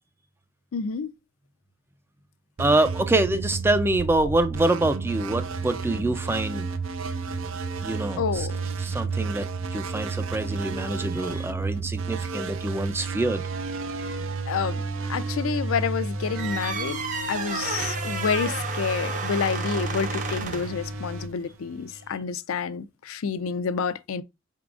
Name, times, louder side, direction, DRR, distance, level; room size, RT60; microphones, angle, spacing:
voice 1, 0.7-1.1 8.2-8.6 14.5-14.8 15.1-17.0 17.3-24.2, left 6 dB, 85° left, 0.4 m, -29 dB
voice 2, 2.6-6.7 7.8-8.5 8.8-9.4 9.7-13.4, right 2 dB, 10° right, 0.3 m, -25 dB
sound 1, 2.6-22.1, right 3 dB, 70° right, 0.5 m, -32 dB
sound 2, 16.3-20.8, right 4 dB, 35° right, 0.7 m, -32 dB
5.7 x 3.7 x 2.4 m
head